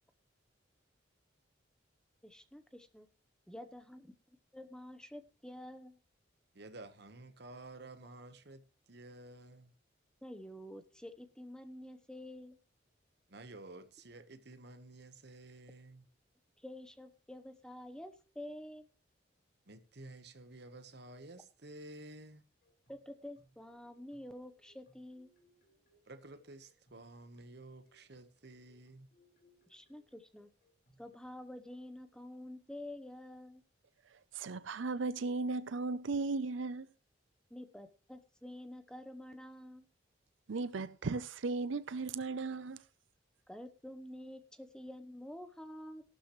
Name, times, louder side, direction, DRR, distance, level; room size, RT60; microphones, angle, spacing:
voice 1, 2.2-3.1 3.5-4.0 4.5-6.0 10.2-12.6 16.6-18.9 22.9-25.3 29.7-30.5 31.0-33.6 37.5-39.8 43.5-46.0, left 1 dB, 5° left, 0.9 m, -48 dB
voice 2, 6.5-9.7 13.3-16.1 19.7-22.4 26.1-29.1, right 2 dB, 55° right, 1.2 m, -52 dB
sound 1, 22.6-31.1, equal, 50° left, 5.1 m, -71 dB
voice 3, 34.0-36.9 40.5-42.8, right 3 dB, 75° right, 0.5 m, -36 dB
14.5 x 12.5 x 3.1 m
head